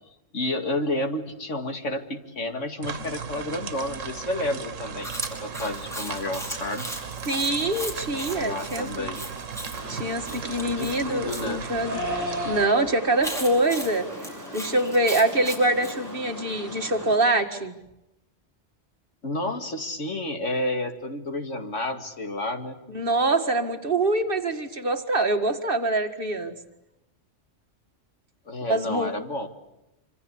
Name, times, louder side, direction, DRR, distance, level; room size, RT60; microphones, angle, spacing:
voice 1, 0.3-6.9 8.3-9.2 10.6-11.6 19.2-22.8 28.5-29.5, left 1 dB, 75° left, 6 dB, 2.6 m, -30 dB
sound 1, 2.8-12.7, right 6 dB, 90° right, 1.7 m, -36 dB
Chewing mastication, 5.0-11.5 13.2-16.0, equal, ahead, 5.1 m, -37 dB
voice 2, 7.3-9.1 9.9-14.1 14.5-17.7 22.9-26.5 28.7-29.1, right 2 dB, 45° right, 5 dB, 2.2 m, -25 dB
sound 2, 9.7-17.2, equal, 15° right, 8.0 m, -37 dB
26.5 x 26.0 x 8.5 m, 0.87 s
omnidirectional pair, 1.3 m